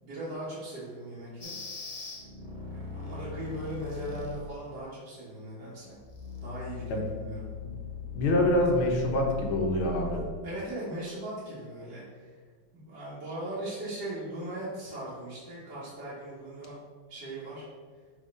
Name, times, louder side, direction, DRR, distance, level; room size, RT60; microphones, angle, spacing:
voice 1, 0.0-1.5 2.7-6.0 6.4-7.5 10.4-12.3 12.7-16.8 17.1-17.7, right 1 dB, 55° right, -10 dB, 1.9 m, -39 dB
sound 1, 1.4-4.5 5.9-10.2, left 4 dB, 50° left, 0.4 m, -40 dB
voice 2, 8.2-10.2, left 1 dB, 75° left, 1 dB, 1.8 m, -26 dB
5.3 x 3.8 x 5.3 m, 1.5 s
omnidirectional pair, 2.3 m